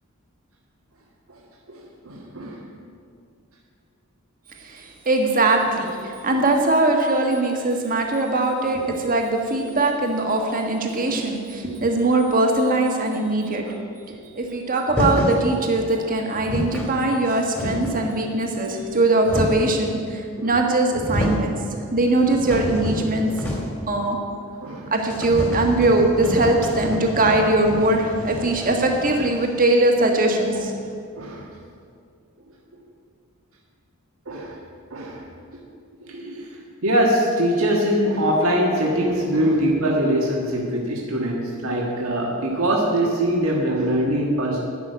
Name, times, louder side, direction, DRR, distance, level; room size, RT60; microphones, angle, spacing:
voice 1, 1.7-2.6 11.1-11.2 13.6-13.7 20.4-20.5 24.6-24.9 26.9-27.0 31.2-31.5 34.3-34.6 34.9-35.2 36.1-36.5 36.8-44.6, right 1 dB, 75° right, -2 dB, 1.6 m, -22 dB
voice 2, 4.6-13.6 14.1-21.6 21.9-23.3 23.9-24.2 24.9-30.7, right 2 dB, 40° right, 2 dB, 1.5 m, -21 dB
sound 1, 14.9-15.4 16.1-16.2 16.3-16.9 17.3-18.1 18.8-19.8 20.5-20.6 20.9-21.5 21.9-23.9 24.1-24.2 24.5-24.6 25.0-29.5, left 1 dB, 10° left, 2.4 m, -28 dB
11.0 x 6.2 x 9.2 m, 2.3 s
head